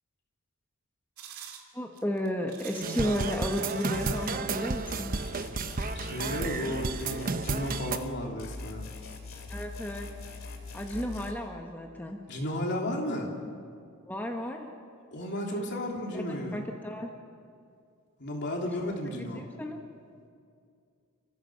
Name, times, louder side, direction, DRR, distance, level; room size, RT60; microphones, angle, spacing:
sound 1, 1.2-4.3 5.0-7.3, right 8 dB, 85° right, 2.6 m, -47 dB
voice 1, 1.7-5.1 9.5-10.1 10.7-12.2 14.1-14.7 15.5-15.8 16.1-16.2 16.5-17.1 19.1-19.8, left 1 dB, 10° left, 1 dB, 1.2 m, -33 dB
sound 2, 2.8-8.0, right 4 dB, 40° right, 0.8 m, -32 dB
sound 3, 3.9-4.5 4.9-8.1 8.4-11.3, left 3 dB, 70° left, 2.4 m, -42 dB
voice 2, 5.9-8.9 12.3-13.3 15.1-16.6 18.2-19.5, left 1 dB, 55° left, 0 dB, 3.3 m, -33 dB
29.5 x 15.0 x 6.4 m, 2.3 s
head